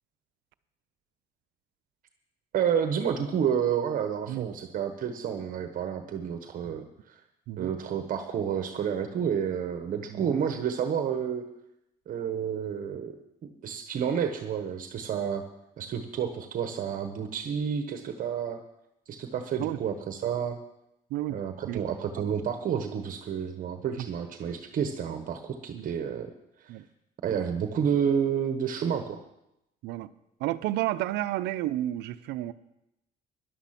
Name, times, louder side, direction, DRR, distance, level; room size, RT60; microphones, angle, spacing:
voice 1, 2.5-7.1 7.6-11.4 12.1-13.2 13.4-15.4 15.8-18.6 19.1-20.6 21.3-26.3 26.6-26.7 27.2-29.2, right 8 dB, 55° right, 7 dB, 1.2 m, -30 dB
voice 2, 10.1-10.4 19.6-19.8 21.1-21.4 21.7-21.8 25.7-25.9 26.7-26.8 29.8-30.1 30.4-32.5, right 15 dB, 90° right, 13 dB, 0.7 m, -31 dB
13.0 x 11.0 x 5.9 m, 0.86 s
cardioid pair, 110°, 17 cm